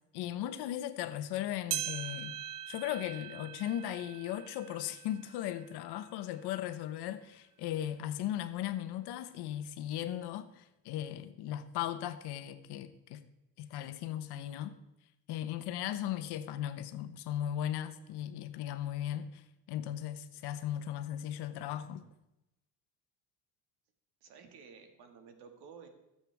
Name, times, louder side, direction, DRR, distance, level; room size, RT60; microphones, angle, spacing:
voice 1, 0.1-2.4 2.7-13.2 13.6-14.8 15.3-22.0, left 11 dB, 85° left, 1.0 m, -37 dB
sound 1, 1.7-6.4 6.9-7.0 7.8-7.9 8.8-8.9, right 12 dB, 55° right, 0.7 m, -42 dB
voice 2, 24.2-25.9, right 6 dB, 80° right, 2.0 m, -53 dB
17.5 x 7.8 x 3.5 m
cardioid pair, 105°, 38 cm